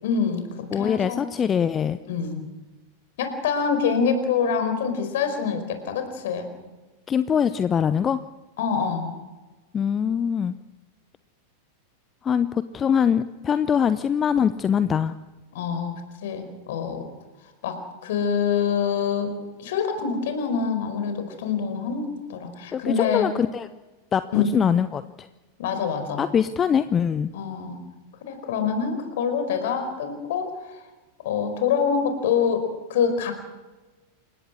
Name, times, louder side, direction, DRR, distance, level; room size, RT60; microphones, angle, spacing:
voice 1, 0.0-1.3 2.1-2.5 3.2-6.5 8.6-9.1 15.5-15.9 16.2-17.1 17.6-19.3 19.6-23.3 24.3-24.5 25.6-26.2 27.3-27.8 28.3-30.5 31.2-32.6 32.9-33.3, left 6 dB, 55° left, 7 dB, 4.8 m, -25 dB
voice 2, 0.7-2.0 7.1-8.2 9.7-10.5 12.2-15.1 22.7-23.7 24.1-25.0 26.2-27.3, left 7 dB, 25° left, 13 dB, 0.7 m, -23 dB
29.0 x 17.0 x 6.4 m, 1.2 s
figure-of-eight pair, 90°, 0 cm